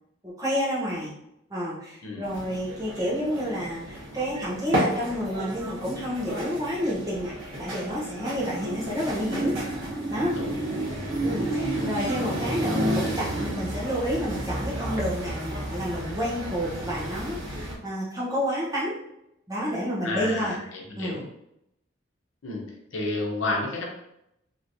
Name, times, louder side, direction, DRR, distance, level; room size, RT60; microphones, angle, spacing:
voice 1, 0.2-1.1 1.5-7.3 7.6-9.5 10.1-10.3 11.2-18.9 19.5-20.6 21.0-21.2, equal, 15° right, -6 dB, 0.8 m, -29 dB
sound 1, 2.2-17.7, right 1 dB, 80° right, 1.1 m, -31 dB
voice 2, 20.0-21.2 22.4-22.6 22.9-23.9, left 2 dB, 85° left, -1 dB, 0.8 m, -31 dB
3.0 x 2.9 x 2.6 m, 0.80 s
head